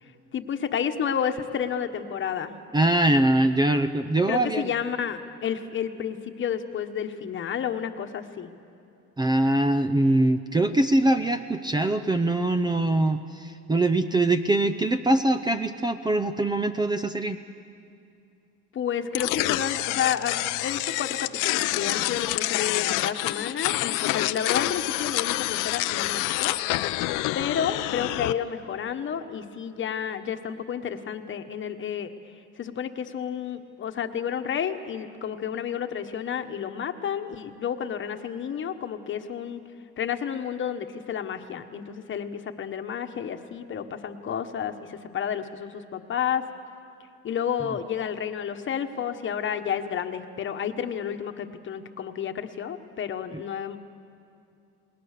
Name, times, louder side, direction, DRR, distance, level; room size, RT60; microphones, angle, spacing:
voice 1, 0.3-2.5 4.3-8.5 18.7-26.6 27.3-32.1 32.6-39.6 40.0-46.4 47.2-53.8, left 8 dB, 40° left, 7 dB, 1.2 m, -31 dB
voice 2, 2.7-4.6 9.2-17.4, right 1 dB, 15° right, 10 dB, 0.6 m, -23 dB
sound 1, 19.1-28.3, left 17 dB, 85° left, 0.7 m, -27 dB
29.5 x 21.0 x 6.7 m, 2.6 s
cardioid pair, 135°, 31 cm